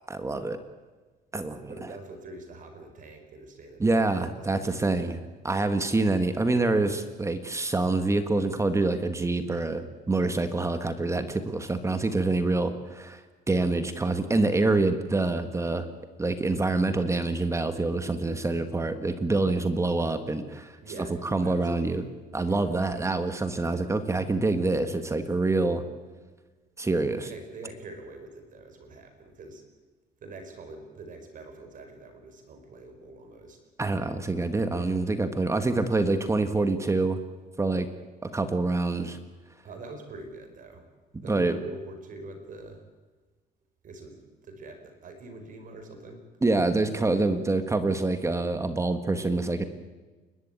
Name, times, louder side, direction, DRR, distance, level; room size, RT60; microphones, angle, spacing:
voice 1, 0.1-0.6 1.3-1.9 3.8-5.2 5.4-13.2 13.5-15.9 16.2-20.7 21.3-22.0 22.3-25.8 26.8-27.3 33.8-37.2 37.6-37.9 38.2-39.2 41.3-41.5 46.4-49.7, right 2 dB, 15° right, 8 dB, 1.7 m, -26 dB
voice 2, 1.6-5.1 20.8-23.0 27.2-29.6 30.2-33.6 34.7-34.9 39.6-40.9 41.2-42.8 43.8-46.2 47.1-47.5, right 2 dB, 50° right, 6 dB, 4.8 m, -45 dB
29.0 x 12.5 x 9.1 m, 1.3 s
cardioid pair, 110°, 17 cm